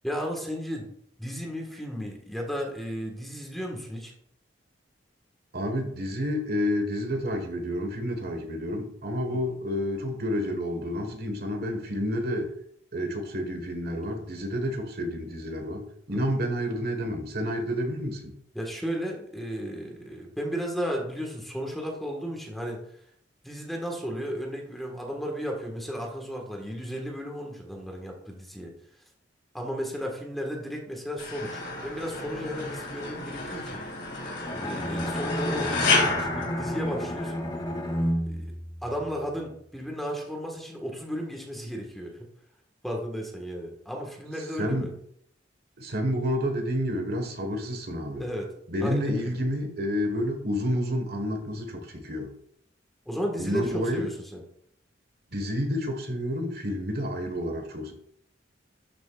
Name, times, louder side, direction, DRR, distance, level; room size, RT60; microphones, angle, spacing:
voice 1, 0.0-0.9 1.2-4.1 9.3-9.4 16.1-16.4 18.5-22.8 23.4-28.7 29.5-33.8 34.5-37.3 38.3-38.5 38.8-42.3 42.8-44.9 48.2-48.5 48.8-49.3 53.0-54.4, equal, ahead, 0 dB, 1.6 m, -34 dB
voice 2, 5.5-12.5 12.9-18.3 44.5-44.9 45.8-48.2 48.7-52.3 53.4-54.1 55.3-57.9, equal, 60° right, 4 dB, 1.5 m, -29 dB
sound 1, 31.2-37.5, left 3 dB, 65° left, 2.6 m, -30 dB
Bowed string instrument, 34.4-39.5, equal, 25° left, 1.3 m, -31 dB
12.5 x 6.2 x 2.5 m, 0.67 s
head